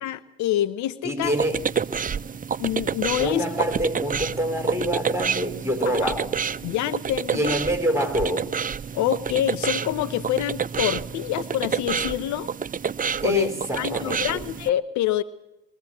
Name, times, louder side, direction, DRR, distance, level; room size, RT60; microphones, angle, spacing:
voice 1, 0.0-1.4 2.6-3.5 6.0-6.1 6.6-7.5 8.9-12.5 13.2-13.5 13.8-15.2, left 12 dB, 70° left, 15 dB, 0.9 m, -26 dB
voice 2, 1.0-1.6 3.2-6.3 7.3-8.5 13.2-14.4, equal, 10° right, 5 dB, 4.8 m, -26 dB
sound 1, 1.2-14.7, right 6 dB, 25° right, 0.7 m, -29 dB
22.5 x 15.5 x 8.0 m, 0.91 s
hypercardioid pair, 50°, 30 cm